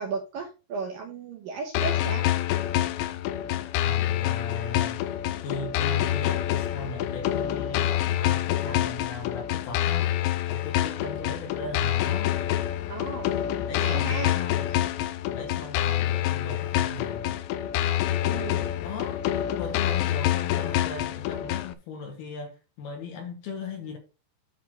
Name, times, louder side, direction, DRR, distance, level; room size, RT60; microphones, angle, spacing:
voice 1, 0.0-2.3 12.9-13.4 13.8-14.3 18.2-18.6, right 4 dB, 80° right, 2.0 m, -34 dB
sound 1, 1.7-21.7, left 12 dB, 85° left, 2.6 m, -27 dB
voice 2, 3.8-5.0 5.4-10.1 10.5-12.3 13.5-14.9 15.2-17.4 18.6-24.0, left 4 dB, 70° left, 2.7 m, -38 dB
12.0 x 4.2 x 3.8 m
omnidirectional pair, 5.7 m